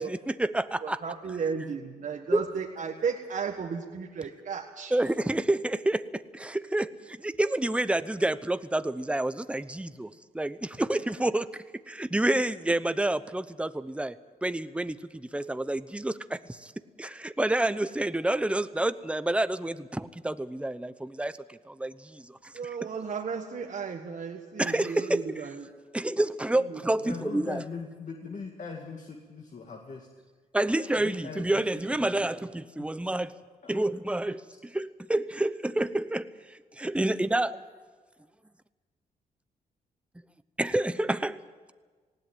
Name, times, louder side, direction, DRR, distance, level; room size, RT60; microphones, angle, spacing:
voice 1, 0.0-1.0 2.3-2.4 4.9-14.2 14.4-16.7 17.0-22.5 22.8-22.9 24.6-25.5 25.9-27.6 30.5-33.3 33.7-37.6 40.6-41.4, right 1 dB, 5° right, 13 dB, 0.9 m, -29 dB
voice 2, 0.8-4.9 22.5-25.6 26.7-26.8, right 6 dB, 55° right, 1 dB, 1.6 m, -34 dB
voice 3, 27.0-30.1 31.0-31.6 31.9-32.2 32.8-32.9 33.6-33.8, left 5 dB, 50° left, 2 dB, 2.2 m, -40 dB
19.0 x 16.5 x 9.2 m, 1.4 s
cardioid pair, 80°, 15 cm